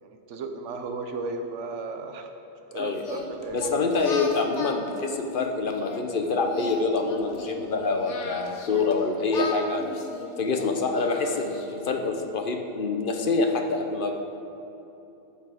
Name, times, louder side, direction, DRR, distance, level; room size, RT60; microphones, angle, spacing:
voice 1, 0.0-2.3 2.7-3.9 8.4-9.0, right 3 dB, 90° right, 6 dB, 1.1 m, -36 dB
Singing, 3.0-6.0 6.5-8.9 9.3-11.9, left 3 dB, 80° left, 1.2 m, -37 dB
voice 2, 3.5-9.9 10.4-14.2, left 3 dB, 55° left, 4 dB, 0.8 m, -26 dB
12.5 x 5.9 x 4.9 m, 3.0 s
omnidirectional pair, 1.2 m